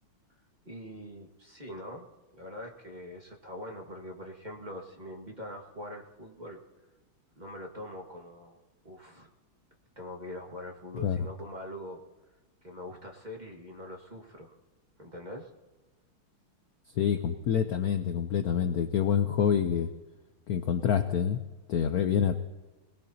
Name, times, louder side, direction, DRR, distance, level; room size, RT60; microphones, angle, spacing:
voice 1, 0.6-2.1 2.4-6.6 7.4-8.6 8.8-9.3 9.9-12.0 12.6-14.5 15.0-15.5, left 1 dB, 20° right, 0 dB, 1.6 m, -43 dB
voice 2, 17.0-19.9 20.5-21.4 21.7-22.3, left 8 dB, 70° left, 8 dB, 0.9 m, -27 dB
26.5 x 19.0 x 2.8 m, 1.2 s
omnidirectional pair, 2.4 m